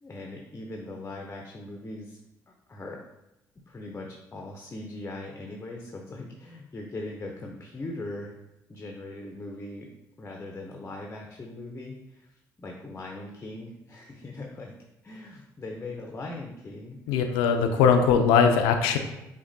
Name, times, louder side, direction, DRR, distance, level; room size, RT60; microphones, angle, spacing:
voice 1, 0.0-2.2 2.5-3.0 3.7-8.3 8.7-9.9 10.2-17.3, left 2 dB, 30° left, 1 dB, 0.6 m, -40 dB
voice 2, 17.1-19.0, left 6 dB, 85° left, 6 dB, 0.4 m, -20 dB
5.8 x 2.2 x 2.6 m, 0.93 s
supercardioid pair, 60°, 8 cm